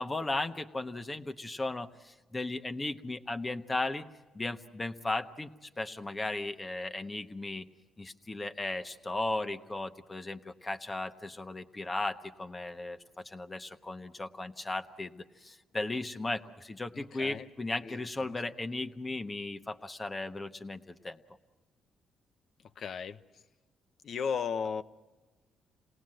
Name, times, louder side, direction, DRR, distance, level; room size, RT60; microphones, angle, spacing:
voice 1, 0.0-4.0 4.3-7.6 8.0-13.0 13.2-21.2, left 2 dB, 20° left, 7 dB, 1.2 m, -36 dB
voice 2, 16.9-17.5 17.8-18.4 22.8-23.2 24.0-24.8, left 6 dB, 60° left, 11 dB, 1.0 m, -35 dB
28.0 x 18.5 x 7.8 m, 1.2 s
cardioid pair, 90°, 0 cm